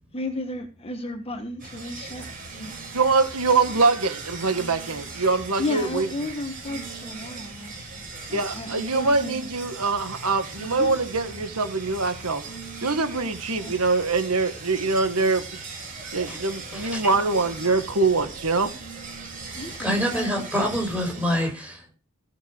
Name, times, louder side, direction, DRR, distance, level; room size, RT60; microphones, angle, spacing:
voice 1, 0.1-2.3 2.6-2.8 5.6-9.4 10.8-10.9 13.5-13.7 19.5-20.5, left 2 dB, 25° left, 1.4 m, -33 dB
sound 1, 1.6-21.4, right 4 dB, 40° right, 7.1 m, -39 dB
voice 2, 2.9-6.1 8.3-12.4 12.8-15.4 16.1-18.7, right 3 dB, 75° right, 1.6 m, -23 dB
voice 3, 16.7-17.1 19.5-21.9, equal, 5° right, 5.9 m, -27 dB
16.0 x 6.7 x 6.3 m
head